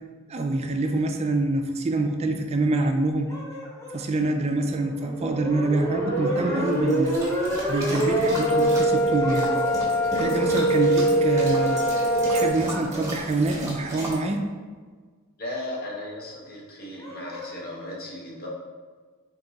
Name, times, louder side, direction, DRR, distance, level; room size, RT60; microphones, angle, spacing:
voice 1, 0.3-3.3 3.9-7.2 7.7-9.5 10.1-14.4, right 2 dB, 30° right, 4 dB, 0.4 m, -26 dB
sound 1, 3.3-4.1 6.2-7.1 9.2-9.8 12.6-13.3 17.0-17.6, equal, 15° left, 0.7 m, -40 dB
sound 2, 4.8-12.5, right 1 dB, 70° left, 1.1 m, -23 dB
sound 3, 6.6-14.2, right 1 dB, 15° right, 0.9 m, -37 dB
voice 2, 15.4-18.5, left 1 dB, 45° left, -2 dB, 0.9 m, -36 dB
3.6 x 2.7 x 3.9 m, 1.5 s
head